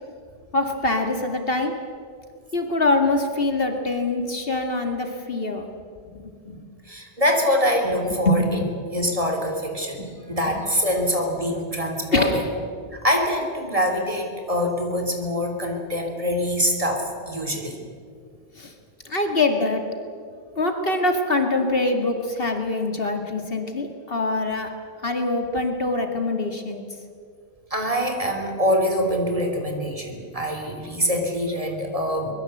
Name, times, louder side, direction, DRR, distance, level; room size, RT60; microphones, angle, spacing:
voice 1, 0.5-1.7 2.5-5.7 6.1-6.6 8.3-8.4 10.0-10.1 12.1-12.4 18.6-18.7 19.1-19.8 20.6-24.7 25.0-26.8, left 2 dB, 55° left, 4 dB, 2.5 m, -24 dB
voice 2, 6.9-8.6 8.9-12.4 12.9-17.8 24.1-24.2 27.7-32.3, equal, 30° right, 3 dB, 3.5 m, -24 dB
24.0 x 21.5 x 8.0 m, 2.2 s
omnidirectional pair, 1.1 m